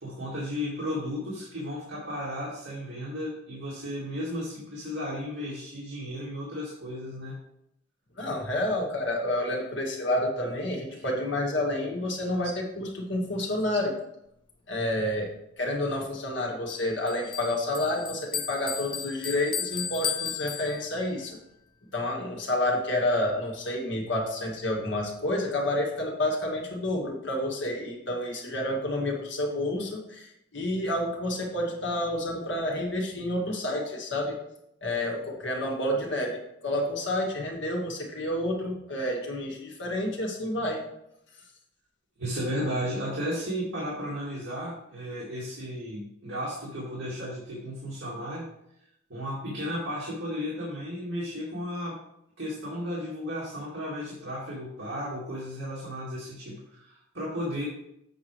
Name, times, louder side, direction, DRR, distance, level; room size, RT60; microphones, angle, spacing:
voice 1, 0.0-7.3 10.9-11.1 42.2-48.5 49.1-52.0 52.4-57.6, equal, 70° right, -5 dB, 2.1 m, -34 dB
voice 2, 8.1-13.9 14.7-15.3 15.6-21.4 21.9-34.4 34.8-40.8, left 1 dB, 65° left, -1 dB, 2.0 m, -29 dB
Bell, 16.7-21.2, left 8 dB, 25° left, 0.4 m, -35 dB
7.8 x 4.8 x 4.7 m, 0.80 s
head